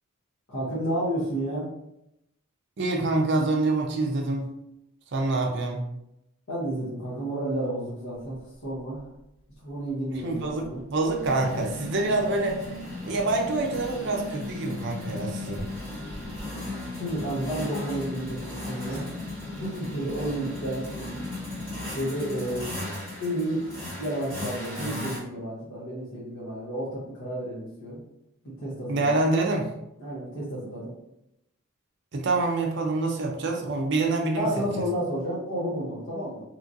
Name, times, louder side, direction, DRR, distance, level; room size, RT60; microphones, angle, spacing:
voice 1, 0.5-1.7 6.5-9.1 9.6-10.8 16.6-16.7 16.9-19.1 19.5-21.3 21.9-22.8 23.2-28.0 28.4-29.1 30.0-30.9 34.4-36.4, right 1 dB, 60° left, -9 dB, 0.8 m, -31 dB
voice 2, 2.8-4.5 5.1-5.8 10.2-12.6 13.0-15.7 28.9-29.7 32.1-34.5, right 2 dB, 50° right, 1 dB, 0.5 m, -26 dB
sound 1, 8.3-8.4 8.7-9.0 10.2-25.2, left 2 dB, 10° left, 1.1 m, -36 dB
3.0 x 2.5 x 2.6 m, 0.84 s
head